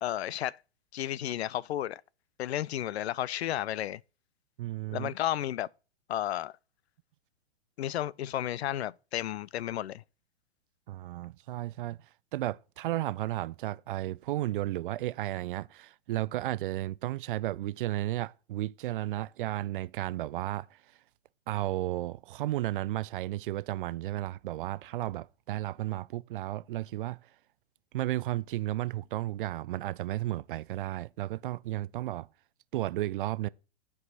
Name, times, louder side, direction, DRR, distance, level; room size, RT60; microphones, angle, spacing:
voice 1, 0.0-0.6 0.9-2.0 2.4-4.0 4.9-5.7 6.1-6.5 7.8-10.0, left 12 dB, 75° left, 0.5 m, -32 dB
voice 2, 4.6-5.1 10.9-12.0 12.3-20.8 21.5-27.2 27.9-32.3 32.7-33.5, right 15 dB, 55° right, 0.4 m, -33 dB
12.5 x 4.8 x 4.0 m
hypercardioid pair, 120°, 33 cm